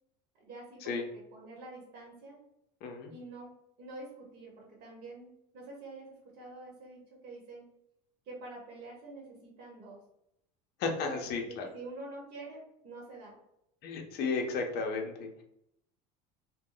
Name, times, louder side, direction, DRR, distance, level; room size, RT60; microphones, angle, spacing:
voice 1, 0.4-2.4 3.1-3.5 3.8-7.6 8.3-10.0 11.1-13.3, right 2 dB, 55° right, -3 dB, 1.0 m, -47 dB
voice 2, 2.8-3.1 10.8-11.7 13.8-15.4, left 4 dB, 50° left, 3 dB, 0.6 m, -34 dB
2.1 x 2.1 x 3.7 m, 0.78 s
supercardioid pair, 110°, 20 cm